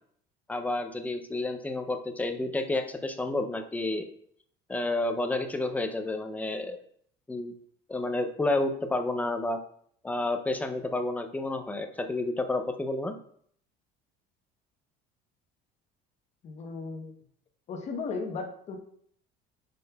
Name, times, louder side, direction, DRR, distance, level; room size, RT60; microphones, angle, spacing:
voice 1, 0.5-4.1 4.7-6.8 7.3-7.5 7.9-9.6 10.0-13.2, left 2 dB, 10° left, 6 dB, 0.5 m, -30 dB
voice 2, 16.4-17.1 17.7-18.8, left 4 dB, 35° left, 3 dB, 0.9 m, -36 dB
9.4 x 5.2 x 2.3 m, 0.63 s
cardioid pair, 160°, 19 cm